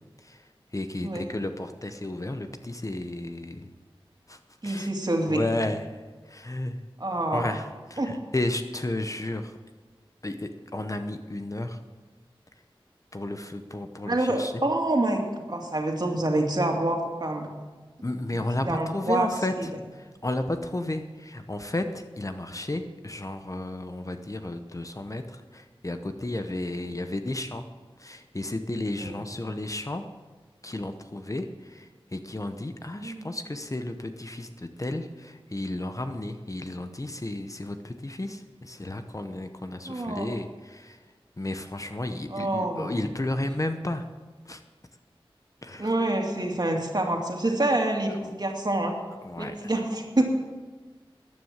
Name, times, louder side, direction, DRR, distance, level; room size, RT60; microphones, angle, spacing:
voice 1, 0.2-3.7 4.3-4.9 5.3-6.9 7.3-9.6 10.2-11.8 13.1-14.5 18.0-27.7 28.0-30.0 30.6-44.0 44.4-44.6 45.6-45.9 48.1-48.3 49.2-49.7, left 1 dB, 35° left, 7 dB, 0.9 m, -33 dB
voice 2, 4.6-5.4 7.0-7.5 8.0-8.2 14.1-15.2 15.5-17.5 18.6-19.3 29.0-29.2 33.0-33.3 39.9-40.3 42.3-43.0 45.8-49.0 49.4-50.2, right 1 dB, 45° right, 1 dB, 2.5 m, -27 dB
14.0 x 9.6 x 7.4 m, 1.3 s
wide cardioid pair, 55°, 10 cm